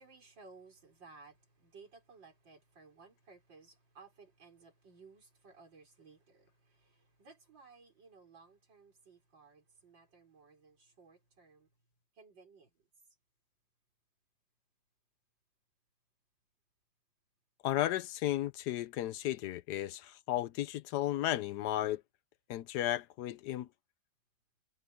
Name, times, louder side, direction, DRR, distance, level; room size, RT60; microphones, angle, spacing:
voice 1, 0.0-11.7 12.1-12.9, right 4 dB, 90° right, 5.5 m, -58 dB
voice 2, 17.6-22.0 22.5-23.7, left 13 dB, 75° left, 1.1 m, -34 dB
omnidirectional pair, 1.9 m